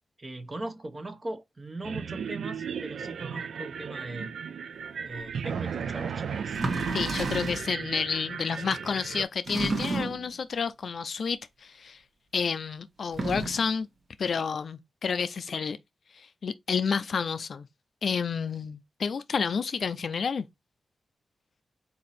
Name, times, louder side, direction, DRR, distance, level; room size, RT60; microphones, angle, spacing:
voice 1, 0.2-4.4 5.0-6.6 7.6-7.8, right 2 dB, 35° right, 0.7 m, -39 dB
sound 1, 1.8-9.3, right 7 dB, 85° right, 0.4 m, -35 dB
sound 2, 5.3-5.4 6.5-7.7 9.5-10.3 13.0-13.7, right 3 dB, 60° right, 0.9 m, -31 dB
voice 2, 6.9-12.0 12.3-13.9 14.2-15.8 16.1-17.7 18.0-20.5, left 6 dB, 65° left, 0.4 m, -30 dB
4.1 x 2.6 x 4.0 m
cardioid pair, 90°, 0 cm